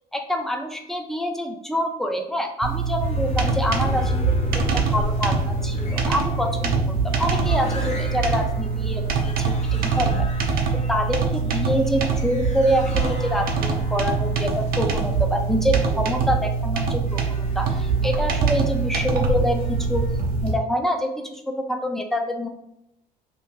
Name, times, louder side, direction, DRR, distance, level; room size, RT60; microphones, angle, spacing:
voice 1, 0.1-10.3 10.7-20.0 20.4-22.5, equal, ahead, 4 dB, 0.4 m, -26 dB
sound 1, 2.6-20.5, right 5 dB, 60° right, 0.6 m, -24 dB
sound 2, 3.0-20.6, left 3 dB, 40° left, 0.7 m, -33 dB
2.6 x 2.6 x 3.6 m, 0.82 s
cardioid pair, 110°, 17 cm